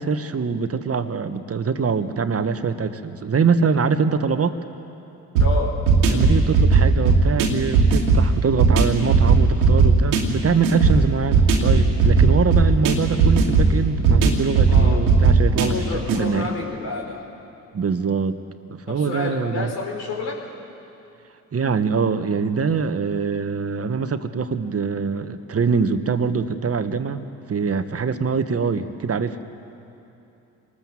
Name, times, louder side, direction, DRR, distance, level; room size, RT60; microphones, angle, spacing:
voice 1, 0.0-4.5 6.1-15.7 16.1-16.5 17.7-18.4 18.7-19.7 21.5-29.4, right 5 dB, 35° right, 10 dB, 1.5 m, -23 dB
voice 2, 5.4-5.8 14.7-15.1 15.6-17.2 18.9-20.4, left 3 dB, 65° left, -2 dB, 5.0 m, -29 dB
sound 1, 5.4-16.2, right 4 dB, 85° right, 2.4 m, -17 dB
26.5 x 19.5 x 7.5 m, 2.8 s
hypercardioid pair, 50°, 41 cm